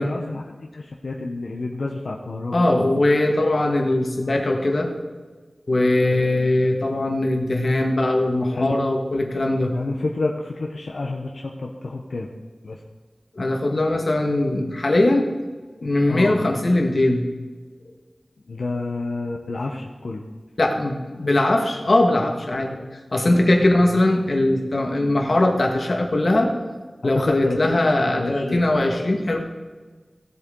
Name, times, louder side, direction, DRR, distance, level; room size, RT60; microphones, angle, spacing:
voice 1, 0.0-2.8 6.1-6.3 8.5-8.8 9.7-12.3 12.6-12.8 16.1-16.5 18.5-20.2 23.7-23.8 27.0-27.6 28.0-28.7, left 3 dB, 85° left, -1 dB, 0.9 m, -29 dB
voice 2, 2.5-4.9 5.7-9.7 13.4-15.3 15.8-17.3 20.6-26.5 27.0-29.4, left 1 dB, 65° left, 2 dB, 1.8 m, -20 dB
17.0 x 8.1 x 3.9 m, 1.4 s
wide cardioid pair, 60°, 0 cm